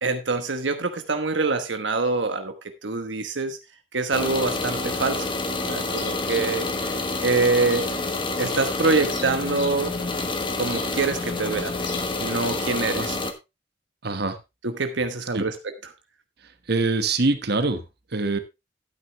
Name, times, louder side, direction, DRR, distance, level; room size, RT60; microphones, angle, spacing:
voice 1, 0.0-2.5 2.8-3.6 3.9-5.3 5.6-7.0 7.2-7.9 8.4-10.0 10.6-11.7 12.2-13.2 14.6-15.7, right 3 dB, 85° right, 8 dB, 1.1 m, -25 dB
sound 1, 4.1-13.3, left 2 dB, 30° left, 1.4 m, -28 dB
sound 2, 5.6-12.6, left 4 dB, 65° left, 4.3 m, -42 dB
voice 2, 14.0-14.4 15.3-15.4 16.7-17.8 18.1-18.4, right 3 dB, 60° right, 9 dB, 1.4 m, -23 dB
12.0 x 9.4 x 3.1 m, 0.24 s
head